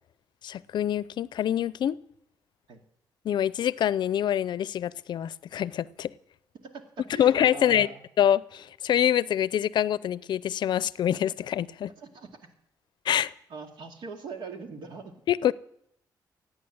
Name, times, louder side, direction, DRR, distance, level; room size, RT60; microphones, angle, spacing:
voice 1, 0.4-2.0 3.2-6.1 7.2-7.9 8.2-11.9 13.0-13.3 15.3-15.5, left 10 dB, 70° left, 0.5 m, -25 dB
voice 2, 7.1-8.0 12.0-12.5 13.5-15.2, right 4 dB, 80° right, 2.3 m, -41 dB
17.0 x 9.2 x 7.9 m
cardioid pair, 85°, 8 cm